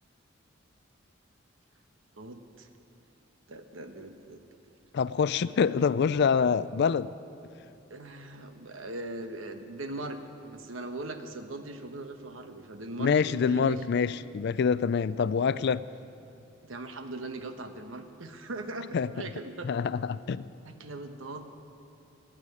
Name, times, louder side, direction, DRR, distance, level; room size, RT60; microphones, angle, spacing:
voice 1, 2.1-2.7 3.5-4.4 7.9-13.8 16.6-19.7 20.6-21.5, right 2 dB, 90° right, 7 dB, 1.1 m, -40 dB
voice 2, 4.9-7.1 13.0-15.8 18.9-19.1 19.6-20.5, left 6 dB, 55° left, 17 dB, 0.4 m, -26 dB
15.5 x 8.8 x 9.7 m, 2.8 s
head